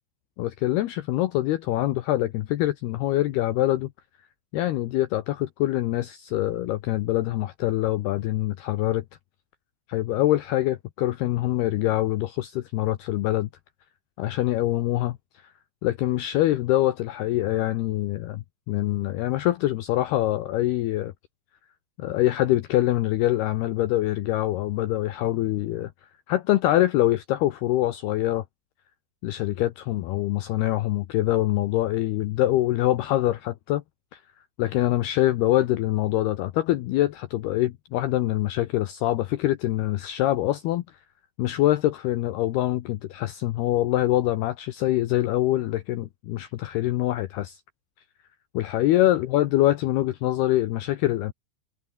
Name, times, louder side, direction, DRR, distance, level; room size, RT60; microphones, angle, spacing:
voice 1, 0.4-3.9 4.5-9.0 9.9-13.5 14.2-15.5 15.8-21.1 22.0-25.9 26.3-28.4 29.2-33.8 34.1-34.2 34.6-41.0 41.4-47.6 48.5-51.3, left 15 dB, 85° left, 2.2 m, -24 dB
omnidirectional pair, 6.0 m